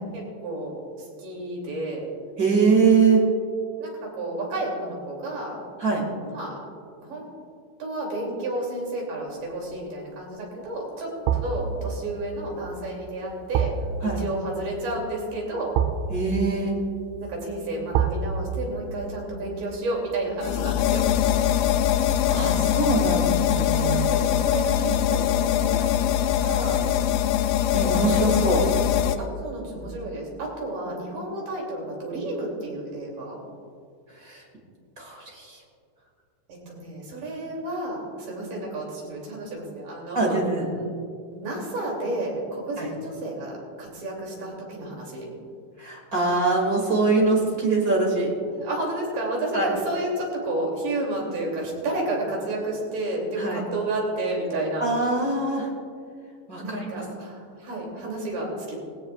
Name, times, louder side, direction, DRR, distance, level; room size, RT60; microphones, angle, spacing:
voice 1, 0.1-2.1 3.8-5.6 6.2-6.6 7.0-7.3 7.8-13.7 14.0-15.7 17.2-21.0 23.7-26.1 26.4-26.8 27.9-28.5 29.2-33.4 36.5-40.4 41.3-43.5 43.8-45.3 48.6-54.9 56.6-58.8, right 2 dB, 60° right, -2 dB, 4.3 m, -31 dB
voice 2, 2.4-3.2 5.8-6.0 14.0-14.2 16.1-16.7 22.0-24.1 27.7-28.7 34.1-34.4 35.0-35.6 40.1-40.7 42.8-42.9 45.8-48.3 49.5-49.7 53.4-53.6 54.8-55.7 56.5-57.0, right 3 dB, 30° right, -1 dB, 2.1 m, -23 dB
sound 1, 9.5-9.8 11.3-22.3 22.6-22.7, right 7 dB, 90° right, 2.7 m, -31 dB
sound 2, 20.4-29.2, left 11 dB, 80° left, 2.3 m, -22 dB
18.5 x 17.0 x 2.4 m, 2.3 s
omnidirectional pair, 4.3 m